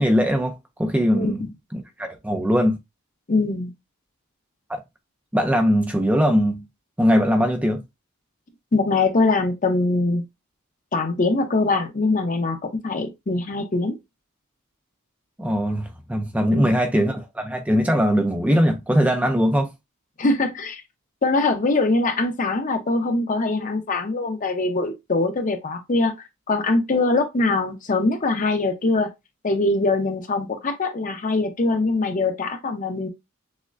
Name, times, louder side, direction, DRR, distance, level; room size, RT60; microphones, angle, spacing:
voice 1, 0.0-1.4 1.7-2.8 4.7-4.8 5.3-6.6 7.0-7.8 15.4-19.7, equal, 5° right, 0.4 m, -21 dB
voice 2, 1.1-1.5 3.3-3.7 8.7-10.2 10.9-14.0 16.5-16.8 20.2-20.8 21.2-26.1 26.5-29.1 29.4-33.1, left 3 dB, 35° left, 0.7 m, -22 dB
6.2 x 2.1 x 2.4 m
head